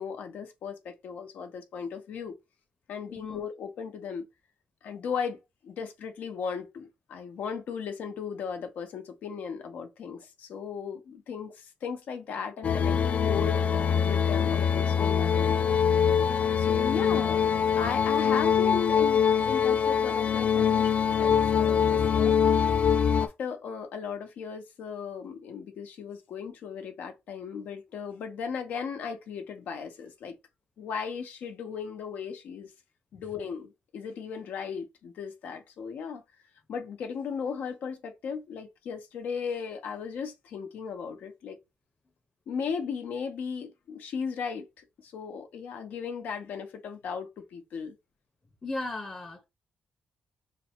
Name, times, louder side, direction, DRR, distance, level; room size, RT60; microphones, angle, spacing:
voice 1, 0.0-2.3 2.9-4.3 4.8-5.4 5.6-15.5 16.6-22.4 23.1-30.3 30.8-32.7 33.1-36.2 36.7-41.6 42.5-44.7 45.0-48.0, left 6 dB, 90° left, 0.8 m, -36 dB
sound 1, 12.6-23.3, left 7 dB, 55° left, 0.3 m, -24 dB
voice 2, 48.6-49.4, left 2 dB, 20° left, 0.6 m, -36 dB
3.3 x 2.2 x 4.3 m
wide cardioid pair, 130°, 3 cm